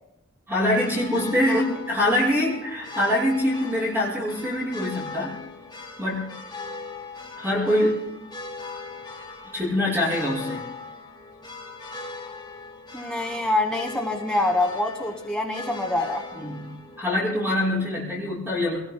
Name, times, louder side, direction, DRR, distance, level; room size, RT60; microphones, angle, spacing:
voice 1, 0.5-5.4 6.0-6.3 7.4-8.0 9.5-10.6 16.3-16.7 17.0-18.8, left 1 dB, 10° right, -9 dB, 5.7 m, -24 dB
sound 1, 0.6-17.1, left 3 dB, 20° left, 2.2 m, -39 dB
voice 2, 12.9-16.2, left 2 dB, 5° left, 2 dB, 1.3 m, -25 dB
29.5 x 19.5 x 2.2 m, 0.93 s
head